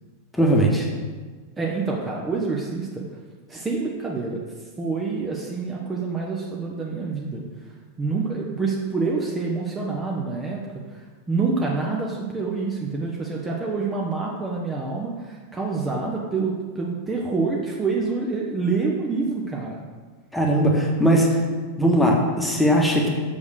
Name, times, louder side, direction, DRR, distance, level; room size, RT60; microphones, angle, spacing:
voice 1, 0.4-0.8 20.3-21.3 21.8-23.1, right 1 dB, 5° left, -1 dB, 1.5 m, -19 dB
voice 2, 1.6-3.0 3.5-10.6 10.9-19.8, right 4 dB, 15° right, -2 dB, 1.0 m, -27 dB
6.6 x 5.4 x 6.5 m, 1.4 s
figure-of-eight pair, 90°, 0 cm